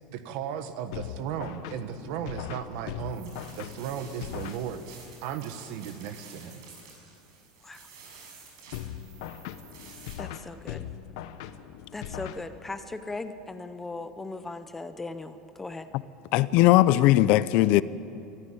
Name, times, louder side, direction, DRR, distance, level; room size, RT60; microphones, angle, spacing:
voice 1, 0.1-6.6, right 8 dB, 60° right, 10 dB, 1.5 m, -36 dB
sound 1, 0.9-5.1 8.7-12.9, left 10 dB, 75° left, 1.0 m, -40 dB
sound 2, 3.0-10.1, right 5 dB, 90° right, 6.3 m, -51 dB
voice 2, 10.2-10.9 11.9-15.9, left 3 dB, 10° left, 10 dB, 0.7 m, -38 dB
voice 3, 16.3-17.8, left 15 dB, 50° left, 17 dB, 0.5 m, -19 dB
22.5 x 14.5 x 8.7 m, 2.8 s
cardioid pair, 165°, 3 cm